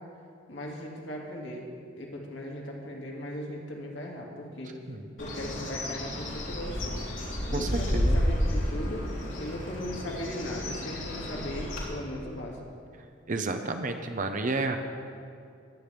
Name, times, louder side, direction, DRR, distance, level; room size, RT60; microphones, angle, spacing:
voice 1, 0.5-1.7 2.0-4.7 5.2-7.0 7.5-9.0 9.4-12.6, left 1 dB, 70° left, -1 dB, 2.2 m, -38 dB
Bird, 5.2-11.8, equal, 85° left, 3.2 m, -31 dB
voice 2, 7.5-8.2 13.3-14.8, right 3 dB, 40° right, 6 dB, 0.7 m, -31 dB
20.0 x 9.0 x 3.5 m, 2.5 s
head